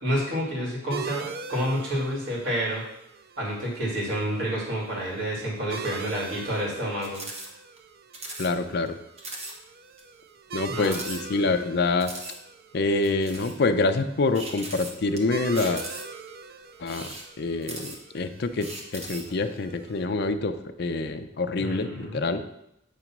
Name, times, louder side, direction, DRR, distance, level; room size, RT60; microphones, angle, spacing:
voice 1, 0.0-2.8 3.4-7.3 10.7-10.9 21.6-22.3, equal, 70° right, -4 dB, 2.3 m, -29 dB
sound 1, 0.9-20.0, right 6 dB, 50° right, 0.4 m, -42 dB
sound 2, 7.0-7.5 7.8-7.9 8.1-8.5 8.9-9.0 9.2-9.5 10.0-10.1 10.8-11.6 12.0-12.4 13.0-13.6 14.3-15.2 15.6-16.3 16.8-18.2 18.6-19.3, right 2 dB, 35° right, 1.0 m, -38 dB
voice 2, 8.4-9.0 10.5-12.1 12.7-15.8 16.8-17.1 17.4-22.4, left 3 dB, 55° left, 8 dB, 0.5 m, -26 dB
8.3 x 3.0 x 5.9 m, 0.82 s
head